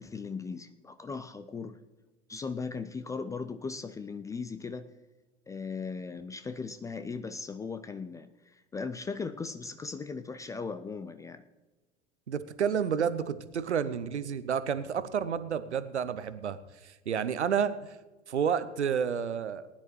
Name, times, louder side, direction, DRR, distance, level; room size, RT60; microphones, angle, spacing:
voice 1, 0.0-1.8 2.3-4.9 5.5-11.4, left 4 dB, 10° left, 10 dB, 0.3 m, -38 dB
voice 2, 12.3-16.6 16.8-17.9 18.3-19.6, right 7 dB, 80° right, 14 dB, 0.8 m, -30 dB
19.5 x 10.5 x 3.1 m, 1.2 s
figure-of-eight pair, 80°, 34 cm